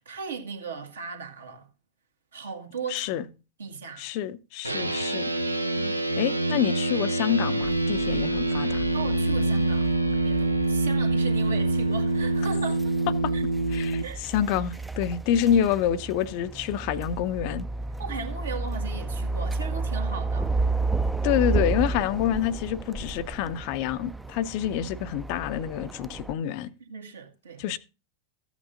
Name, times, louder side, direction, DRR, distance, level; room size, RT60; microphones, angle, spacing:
voice 1, 0.0-1.7 2.3-3.3 3.6-4.1 5.7-6.0 8.9-9.9 10.2-12.9 13.3-13.4 13.7-14.2 18.0-20.5 26.1-26.2 26.8-27.6, right 5 dB, 70° right, 1.8 m, -37 dB
voice 2, 2.9-3.2 4.0-5.3 6.2-8.8 13.7-17.7 21.2-26.7 27.6-27.8, left 10 dB, 45° left, 0.6 m, -27 dB
sound 1, 4.6-14.0, right 2 dB, 85° right, 0.7 m, -25 dB
sound 2, 7.6-26.3, right 3 dB, 5° right, 0.4 m, -32 dB
14.5 x 8.2 x 2.5 m
figure-of-eight pair, 90°, 0 cm